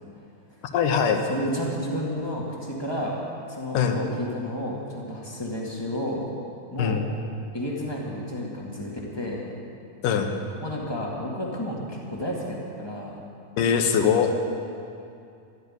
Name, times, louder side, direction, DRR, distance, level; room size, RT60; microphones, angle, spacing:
voice 1, 0.7-1.2 3.7-4.0 6.8-7.1 10.0-10.3 13.6-14.3, left 7 dB, 75° left, 5 dB, 2.6 m, -22 dB
voice 2, 1.3-3.2 3.5-6.2 6.7-7.0 7.5-9.5 10.6-13.1, equal, 15° left, -3 dB, 0.8 m, -31 dB
13.0 x 9.7 x 9.5 m, 2.5 s
omnidirectional pair, 4.0 m